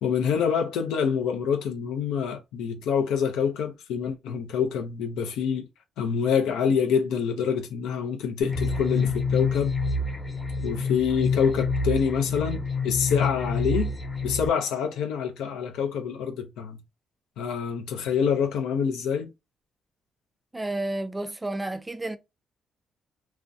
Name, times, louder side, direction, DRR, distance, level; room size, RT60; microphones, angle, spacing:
voice 1, 0.0-5.7 6.0-9.8 10.6-13.9 14.2-16.8 17.4-19.3, left 7 dB, 90° left, 0.5 m, -26 dB
sound 1, 8.4-14.5, left 4 dB, 20° left, 0.8 m, -27 dB
voice 2, 20.5-22.2, right 2 dB, 15° right, 0.4 m, -31 dB
2.4 x 2.1 x 2.5 m
cardioid pair, 90°, 0 cm